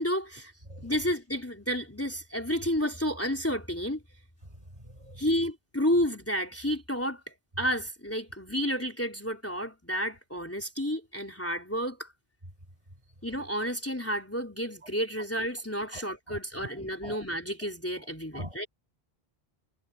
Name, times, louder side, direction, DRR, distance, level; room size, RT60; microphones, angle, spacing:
voice 1, 0.0-0.5 0.8-4.0 5.2-12.1 13.2-18.7, equal, 15° left, 3.7 m, -31 dB
voice 2, 4.7-5.2 15.9-16.7 17.0-17.2 18.0-18.1 18.3-18.7, equal, 30° right, 6.2 m, -43 dB
omnidirectional pair, 1.0 m